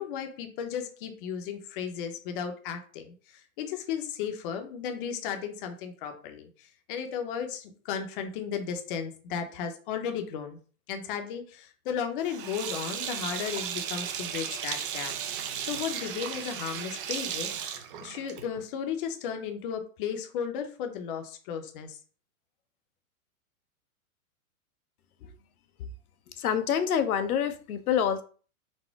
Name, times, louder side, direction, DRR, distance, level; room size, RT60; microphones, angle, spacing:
voice 1, 0.0-10.6 10.9-15.2 15.6-22.0, left 7 dB, 40° left, 6 dB, 0.6 m, -35 dB
Sink (filling or washing), 12.2-18.6, right 9 dB, 40° right, 0.5 m, -35 dB
voice 2, 26.4-28.2, left 8 dB, 80° left, 9 dB, 0.7 m, -26 dB
4.2 x 2.1 x 4.5 m, 0.40 s
hypercardioid pair, 140°, 43 cm